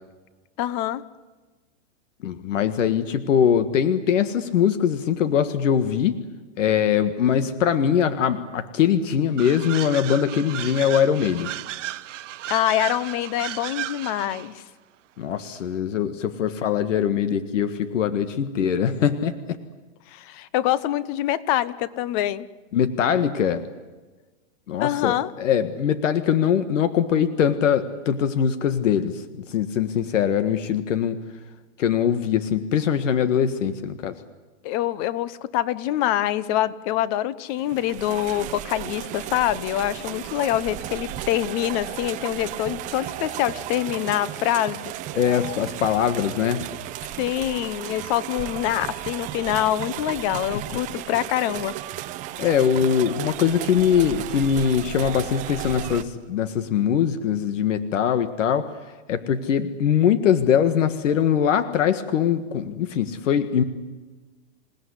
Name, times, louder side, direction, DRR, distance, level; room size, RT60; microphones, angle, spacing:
voice 1, 0.6-1.0 12.5-14.6 20.1-22.5 24.8-25.3 34.6-44.9 47.2-51.7, left 13 dB, 30° left, 18 dB, 0.9 m, -25 dB
voice 2, 2.2-6.2 6.6-11.5 15.2-19.3 22.7-23.6 24.7-29.2 29.5-31.2 31.8-34.1 45.1-46.6 52.4-58.7 59.1-63.6, left 8 dB, 80° left, 11 dB, 1.8 m, -22 dB
sound 1, 9.4-14.5, right 13 dB, 75° right, 1.0 m, -34 dB
sound 2, 37.6-56.0, right 14 dB, 20° right, 0.8 m, -34 dB
27.5 x 17.5 x 9.9 m, 1.3 s
supercardioid pair, 160°, 37 cm